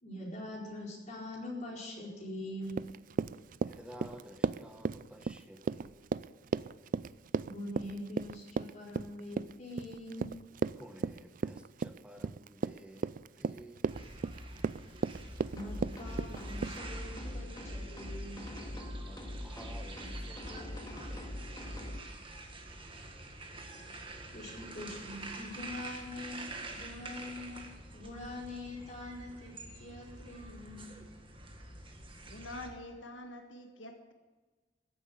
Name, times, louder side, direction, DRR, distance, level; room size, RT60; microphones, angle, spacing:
voice 1, 0.0-2.8 7.4-10.3 15.5-18.5 24.3-27.6 27.9-31.1, left 1 dB, 40° left, -3 dB, 4.5 m, -43 dB
Run, 2.7-16.8, right 5 dB, 45° right, 0.3 m, -35 dB
voice 2, 3.6-6.0 10.8-13.9 19.0-21.9, equal, 5° right, 6 dB, 1.2 m, -53 dB
sound 1, 13.9-32.7, right 2 dB, 30° right, 1.7 m, -47 dB
sound 2, 15.6-22.0, left 1 dB, 20° left, 1.9 m, -42 dB
voice 3, 32.2-34.1, left 1 dB, 75° left, 5 dB, 1.7 m, -46 dB
14.5 x 8.1 x 8.6 m, 1.3 s
head